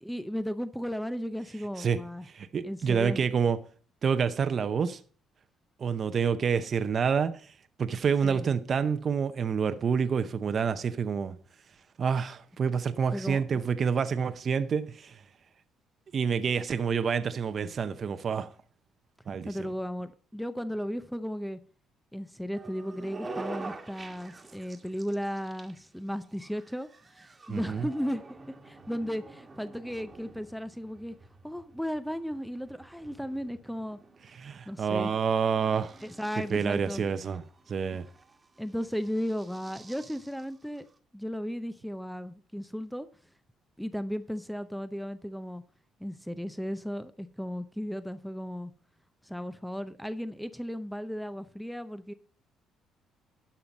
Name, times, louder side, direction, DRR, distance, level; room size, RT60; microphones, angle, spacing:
voice 1, 0.0-2.3 2.6-3.2 8.2-8.5 13.1-13.4 19.5-21.6 22.1-31.2 31.4-34.0 34.7-35.1 36.0-37.0 38.6-40.9 41.1-43.1 43.8-45.6 46.0-48.7 49.2-52.1, equal, ahead, 0.6 m, -35 dB
voice 2, 2.3-3.6 4.0-5.0 5.8-7.4 7.8-11.4 12.0-15.2 16.1-18.5 19.3-19.7 27.5-27.9 34.4-36.0 36.5-37.4 37.7-38.1, right 6 dB, 45° right, 0.7 m, -28 dB
sound 1, 22.5-41.0, right 3 dB, 25° right, 1.4 m, -48 dB
11.5 x 5.7 x 5.2 m
cardioid pair, 110°, 0 cm